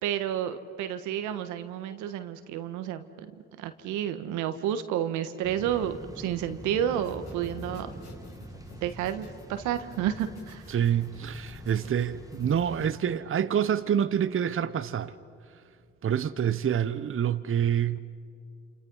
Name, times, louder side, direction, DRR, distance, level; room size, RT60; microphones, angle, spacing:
voice 1, 0.0-3.1 3.6-7.9 8.8-10.7, right 10 dB, 85° right, 1.4 m, -30 dB
sound 1, 5.4-13.0, right 1 dB, 10° right, 1.8 m, -45 dB
sound 2, 7.0-12.9, left 3 dB, 65° left, 6.2 m, -50 dB
voice 2, 10.7-15.1 16.0-18.0, right 9 dB, 45° right, 0.9 m, -27 dB
28.0 x 28.0 x 5.5 m
supercardioid pair, 60°, 29 cm